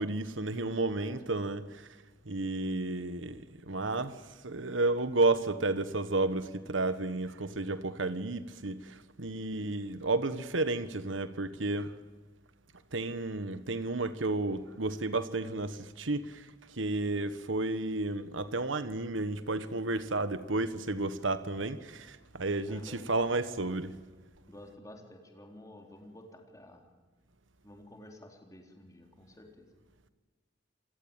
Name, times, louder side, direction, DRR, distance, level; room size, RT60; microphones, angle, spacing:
voice 1, 0.0-1.9 2.2-4.2 4.4-11.9 12.9-23.9, right 2 dB, 90° right, 1.4 m, -32 dB
voice 2, 22.7-23.0 24.5-26.9 27.6-29.7, left 1 dB, 15° left, 3.9 m, -51 dB
27.5 x 20.5 x 9.1 m
head